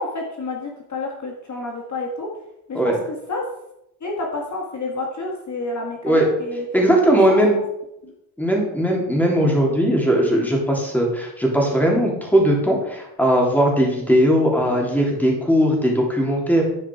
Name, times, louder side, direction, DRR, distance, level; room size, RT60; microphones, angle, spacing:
voice 1, 0.0-2.3 2.7-3.5 4.0-6.7 7.3-7.4 8.0-8.1, left 2 dB, 45° left, 0 dB, 1.7 m, -29 dB
voice 2, 6.7-7.6 8.4-16.6, equal, 5° left, -1 dB, 3.2 m, -18 dB
11.5 x 4.9 x 4.7 m, 0.84 s
cardioid pair, 75°, 38 cm